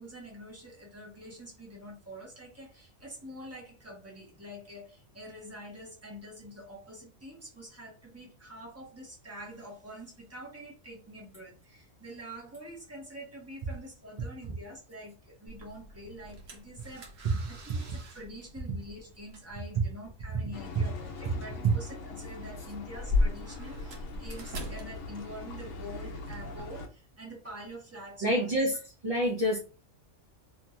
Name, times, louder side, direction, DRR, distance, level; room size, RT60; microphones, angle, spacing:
voice 1, 0.0-28.5, equal, 15° right, -2 dB, 0.9 m, -46 dB
sound 1, 15.5-26.6, left 2 dB, 80° right, 1.1 m, -38 dB
sound 2, 20.5-26.9, left 3 dB, 80° left, 1.1 m, -43 dB
voice 2, 28.2-28.8 29.0-29.6, equal, 40° right, -2 dB, 0.5 m, -27 dB
2.8 x 2.8 x 2.3 m, 0.32 s
omnidirectional pair, 1.3 m